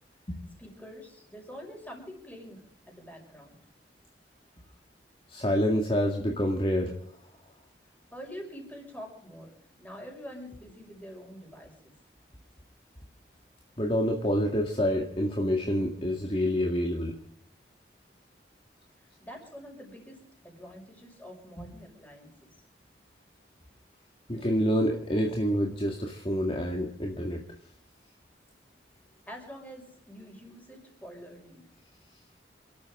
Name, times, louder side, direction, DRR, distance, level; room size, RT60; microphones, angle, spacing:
voice 1, 0.6-3.6 8.1-11.9 19.0-22.5 29.3-31.7, equal, 10° left, 1 dB, 6.0 m, -46 dB
voice 2, 5.3-6.9 13.8-17.2 21.6-21.7 24.3-27.4, equal, 30° left, 1 dB, 2.0 m, -27 dB
28.5 x 13.0 x 3.7 m, 0.63 s
head